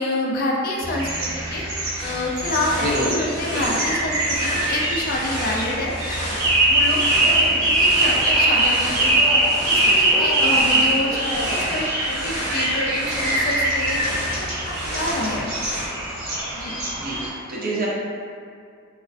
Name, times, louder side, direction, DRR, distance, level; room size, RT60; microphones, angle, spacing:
voice 1, 0.0-1.6 2.0-6.2 6.7-7.0 7.3-9.1 9.4-11.2 11.5-14.0 14.4-15.9 16.5-16.8, left 1 dB, 45° left, -2 dB, 0.3 m, -27 dB
sound 1, 0.8-17.3, right 1 dB, 85° right, 0.6 m, -22 dB
sound 2, 2.0-15.8, equal, 25° right, 1.0 m, -32 dB
voice 2, 2.8-3.3 3.5-3.7 9.8-9.9 17.0-17.9, right 1 dB, 45° right, -5 dB, 0.5 m, -27 dB
Cheering, 7.1-7.7 8.1-8.8 9.1-9.7 10.1-11.8, equal, 5° left, 0.7 m, -31 dB
2.3 x 2.3 x 2.3 m, 2.2 s
head